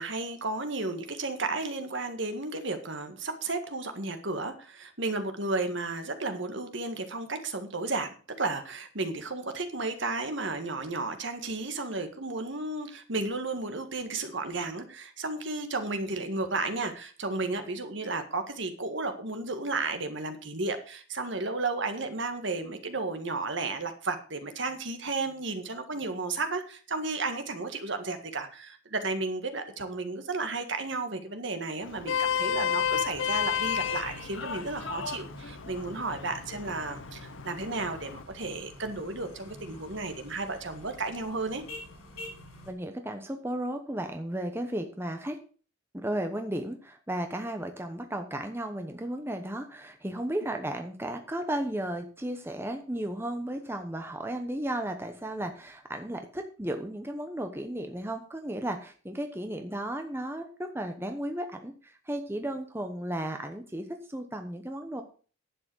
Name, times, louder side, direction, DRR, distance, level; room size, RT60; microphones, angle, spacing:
voice 1, 0.0-41.6, right 3 dB, 55° right, 7 dB, 1.8 m, -33 dB
Vehicle horn car horn honking, 31.8-38.2, left 8 dB, 60° left, 0.6 m, -32 dB
sound 1, 32.8-42.7, left 1 dB, 90° left, 6.3 m, -47 dB
voice 2, 42.7-45.4 45.9-65.0, right 1 dB, 10° right, 5 dB, 0.9 m, -34 dB
11.0 x 7.9 x 6.2 m, 0.39 s
head